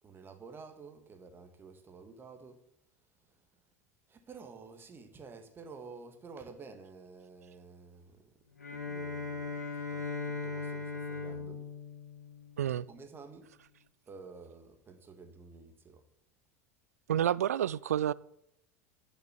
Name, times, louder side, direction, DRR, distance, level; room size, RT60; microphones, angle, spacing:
voice 1, 0.0-2.6 4.1-8.3 8.7-11.7 12.9-13.5 14.1-16.0, right 4 dB, 25° right, 1.9 m, -51 dB
Bowed string instrument, 8.6-13.0, left 4 dB, 90° left, 1.6 m, -39 dB
voice 2, 12.6-12.9 17.1-18.1, right 10 dB, 75° right, 0.4 m, -29 dB
11.0 x 6.3 x 7.2 m
figure-of-eight pair, 80°, 8 cm